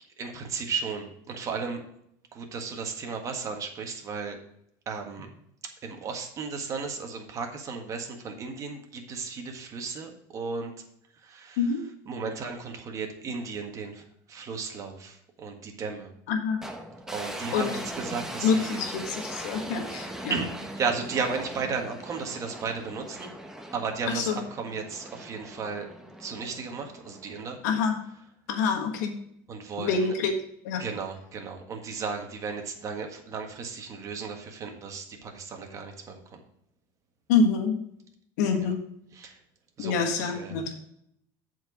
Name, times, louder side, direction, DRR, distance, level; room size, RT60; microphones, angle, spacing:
voice 1, 0.2-1.8 2.3-4.4 4.8-5.3 5.8-10.7 11.2-11.6 12.1-16.1 17.1-18.8 20.3-20.5 20.8-23.3 23.7-25.9 26.2-27.6 29.5-30.1 30.8-36.4 39.1-39.4 39.8-40.6, right 5 dB, 35° right, 3 dB, 1.7 m, -34 dB
voice 2, 16.3-16.6 17.5-17.7 18.4-20.4 24.1-24.4 27.6-28.0 28.5-29.1 29.8-30.3 30.6-30.8 37.3-37.8 38.4-38.8 39.8-40.9, left 5 dB, 85° left, 4 dB, 1.5 m, -26 dB
sound 1, 16.6-27.8, right 1 dB, 5° right, 1.0 m, -40 dB
7.8 x 4.7 x 6.2 m, 0.73 s
supercardioid pair, 120°, 9 cm